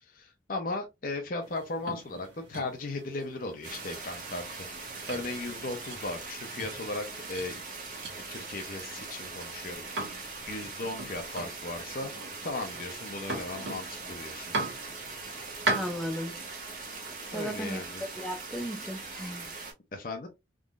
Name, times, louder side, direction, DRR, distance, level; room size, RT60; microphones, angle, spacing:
voice 1, 0.0-4.7 5.1-7.6 8.3-12.1 12.4-14.5 17.3-18.0 19.9-20.3, left 2 dB, 45° left, 0.6 m, -37 dB
sound 1, 1.4-16.1, right 2 dB, 70° right, 1.3 m, -40 dB
sound 2, 3.6-19.7, right 4 dB, 45° right, 1.4 m, -41 dB
voice 2, 15.7-16.3 17.3-19.5, equal, ahead, 0.6 m, -36 dB
3.7 x 3.0 x 2.4 m
head